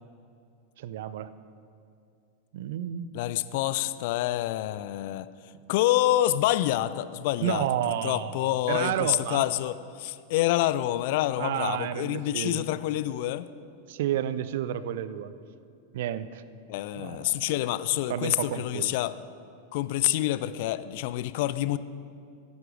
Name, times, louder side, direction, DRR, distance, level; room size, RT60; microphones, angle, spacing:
voice 1, 0.8-1.3 2.5-3.1 7.4-9.5 11.4-12.6 13.9-15.3 15.9-16.4 17.0-17.4 18.1-18.9, right 11 dB, 55° right, 14 dB, 0.5 m, -31 dB
voice 2, 3.1-5.3 5.7-7.7 8.0-13.5 16.7-19.1 19.7-21.8, left 14 dB, 50° left, 14 dB, 0.4 m, -27 dB
14.0 x 10.5 x 5.1 m, 2.5 s
figure-of-eight pair, 90°, 0 cm